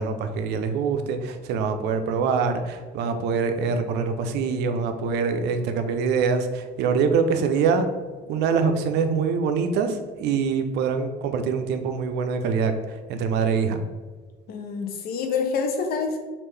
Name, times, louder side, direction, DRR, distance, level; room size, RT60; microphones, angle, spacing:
voice 1, 0.0-7.9 8.3-13.8, right 5 dB, 80° right, 7 dB, 0.4 m, -24 dB
voice 2, 14.5-16.2, left 5 dB, 65° left, 5 dB, 0.6 m, -27 dB
3.5 x 2.5 x 3.2 m, 1.3 s
cardioid pair, 110°, 17 cm